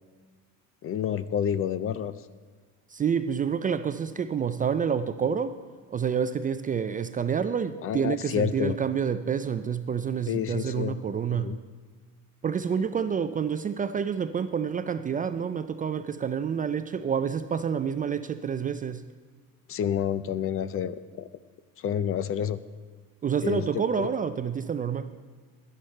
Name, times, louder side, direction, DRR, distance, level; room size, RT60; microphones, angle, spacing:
voice 1, 0.8-2.1 7.8-8.8 10.3-11.0 11.3-11.6 19.7-21.3 21.8-22.6 23.4-24.1, left 9 dB, 40° left, 15 dB, 0.5 m, -29 dB
voice 2, 2.9-5.6 5.9-11.5 12.4-19.1 23.2-25.1, right 7 dB, 25° right, 11 dB, 0.3 m, -28 dB
11.0 x 10.5 x 4.4 m, 1.5 s
cardioid pair, 110°, 36 cm